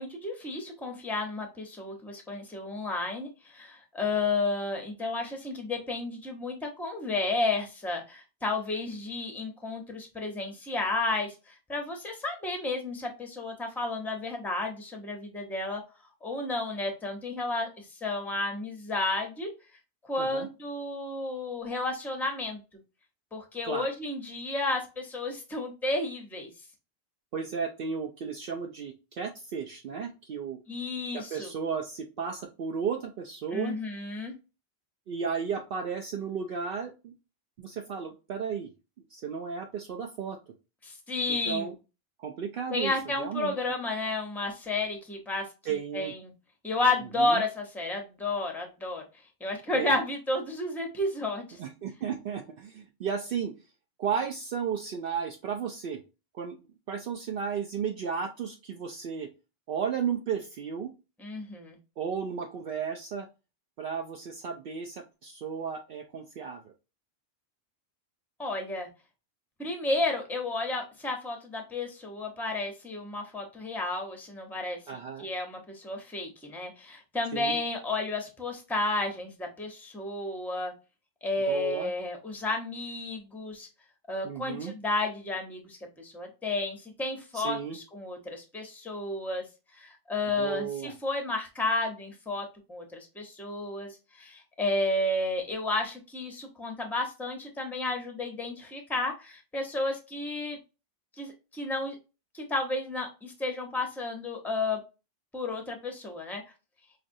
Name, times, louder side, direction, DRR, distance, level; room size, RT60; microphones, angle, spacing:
voice 1, 0.0-15.8 16.2-19.5 20.1-22.6 23.3-26.5 30.7-31.5 33.5-34.3 40.8-41.7 42.7-46.3 46.6-49.0 49.4-51.6 61.2-61.8 68.4-68.9 69.6-74.8 75.2-80.7 81.2-83.7 84.1-89.4 89.7-100.6 101.2-102.0 102.3-104.8 105.3-106.4, left 2 dB, ahead, 3 dB, 0.7 m, -32 dB
voice 2, 27.3-30.6 31.1-33.8 35.1-37.1 37.6-38.7 39.1-40.4 41.3-41.7 42.2-42.9 43.2-43.5 45.7-46.1 47.2-47.4 49.7-50.0 51.6-53.5 54.0-56.0 56.3-56.6 56.9-59.3 59.7-60.9 62.0-63.3 63.8-66.6 74.9-75.3 77.3-77.6 81.5-81.9 84.2-84.7 87.3-87.8 90.4-90.9, right 6 dB, 65° right, 3 dB, 0.7 m, -34 dB
5.0 x 2.5 x 2.6 m, 0.29 s
omnidirectional pair, 1.1 m